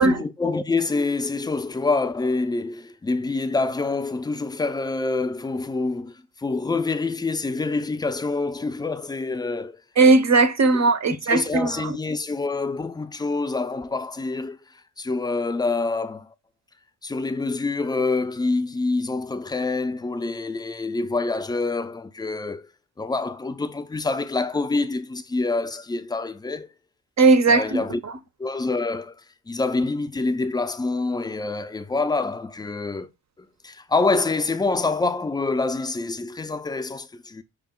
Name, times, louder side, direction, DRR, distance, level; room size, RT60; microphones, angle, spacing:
voice 1, 0.0-9.8 10.7-10.8 11.1-14.6 15.0-16.3 17.0-22.7 23.0-26.7 27.5-28.0 28.4-29.2 29.5-33.1 33.4-37.4, left 3 dB, 10° left, 0.4 m, -26 dB
voice 2, 10.0-11.9 27.2-28.1, right 3 dB, 35° right, 0.6 m, -18 dB
5.1 x 2.0 x 3.6 m
hypercardioid pair, 45°, 48 cm